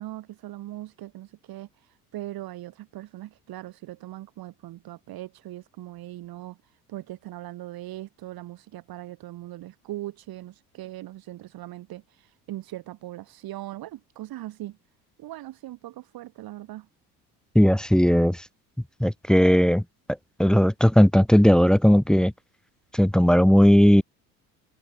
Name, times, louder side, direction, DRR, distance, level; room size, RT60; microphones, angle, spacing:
voice 1, 0.0-1.7 2.1-6.6 6.9-14.8 15.2-16.9, right 15 dB, 50° right, 2.0 m, -40 dB
voice 2, 17.5-18.4 19.0-19.8 20.4-22.3 22.9-24.0, equal, ahead, 0.6 m, -17 dB
figure-of-eight pair, 60°, 46 cm